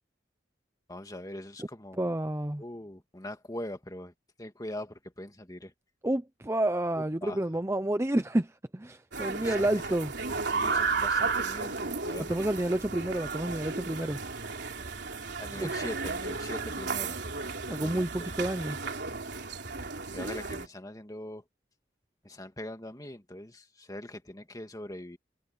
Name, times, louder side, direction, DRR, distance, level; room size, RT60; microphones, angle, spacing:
voice 1, 0.9-2.1 2.6-4.1 4.4-5.7 7.0-7.4 9.4-9.8 10.5-12.4 15.4-17.2 17.8-18.3 20.1-21.4 22.2-25.2, left 1 dB, 20° left, 2.2 m, -42 dB
voice 2, 2.0-2.6 6.0-10.1 12.3-14.2 15.6-15.7 17.7-18.8, right 1 dB, 15° right, 0.7 m, -29 dB
sound 1, 9.1-20.7, right 4 dB, 60° right, 3.6 m, -33 dB
head